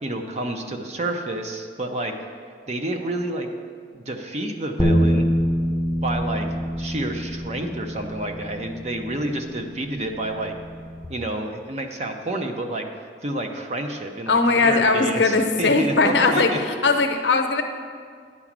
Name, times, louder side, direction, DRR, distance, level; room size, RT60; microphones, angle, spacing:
voice 1, 0.0-2.1 2.7-3.5 3.9-5.3 6.0-6.5 6.8-10.5 11.1-12.9 13.2-16.6, right 1 dB, 40° right, 4 dB, 0.7 m, -29 dB
sound 1, 4.8-11.1, equal, 15° left, 0.6 m, -26 dB
voice 2, 14.3-17.6, left 3 dB, 80° left, 5 dB, 0.8 m, -19 dB
9.7 x 4.9 x 7.4 m, 2.1 s
head